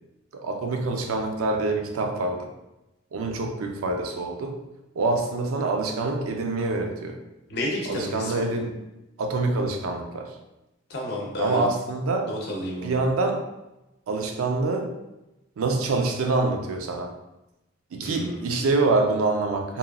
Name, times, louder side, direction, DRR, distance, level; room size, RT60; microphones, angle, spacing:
voice 1, 0.3-2.5 3.1-4.6 5.0-7.2 7.9-8.7 9.2-10.3 11.4-12.3 12.8-13.4 14.1-14.9 15.6-17.1 17.9-19.8, right 3 dB, 90° right, 4 dB, 0.4 m, -26 dB
voice 2, 7.5-8.5 10.9-11.6 12.3-13.0 18.0-18.4, left 1 dB, 50° left, -2 dB, 0.6 m, -31 dB
2.9 x 2.3 x 2.3 m, 0.96 s
head